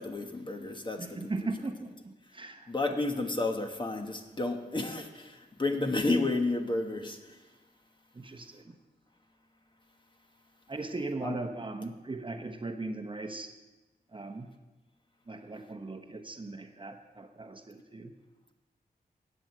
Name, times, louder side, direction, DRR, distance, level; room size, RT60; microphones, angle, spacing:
voice 1, 0.0-1.5 2.7-7.2 11.2-11.4, left 2 dB, 30° left, 4 dB, 1.3 m, -31 dB
voice 2, 1.0-2.7 3.2-3.3 8.1-8.8 10.7-13.5 14.1-14.5 15.3-18.1, right 2 dB, 30° right, 6 dB, 0.9 m, -38 dB
10.5 x 9.1 x 7.7 m, 1.2 s
wide cardioid pair, 105°, 16 cm